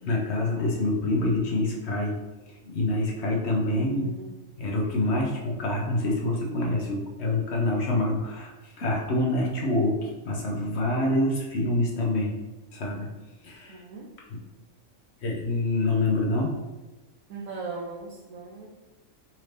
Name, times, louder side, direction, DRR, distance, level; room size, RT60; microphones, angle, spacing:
voice 1, 0.0-2.2 2.5-4.1 4.6-12.3 12.7-13.1 13.4-13.8 14.3-14.4 15.2-16.6, left 2 dB, 55° left, -1 dB, 0.9 m, -26 dB
voice 2, 3.7-4.3 13.7-14.1 17.3-18.7, right 3 dB, 85° right, -3 dB, 1.1 m, -38 dB
4.3 x 2.6 x 3.2 m, 1.1 s
omnidirectional pair, 1.5 m